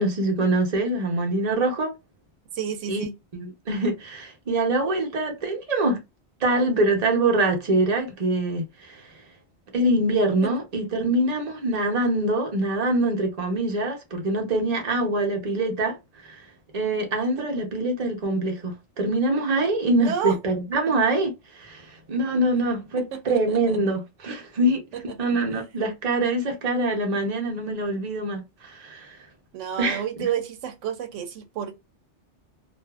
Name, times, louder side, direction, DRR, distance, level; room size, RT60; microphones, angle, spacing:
voice 1, 0.0-1.9 2.9-3.0 3.3-6.0 6.4-9.0 9.7-16.4 16.7-24.8 25.2-29.2 29.8-30.0, right 2 dB, 40° right, 0.8 m, -24 dB
voice 2, 2.5-3.1 10.4-10.5 17.4-17.9 20.0-20.4 23.0-23.8 24.9-25.0 29.5-31.7, right 8 dB, 85° right, 0.9 m, -31 dB
2.5 x 2.4 x 2.3 m
omnidirectional pair, 1.2 m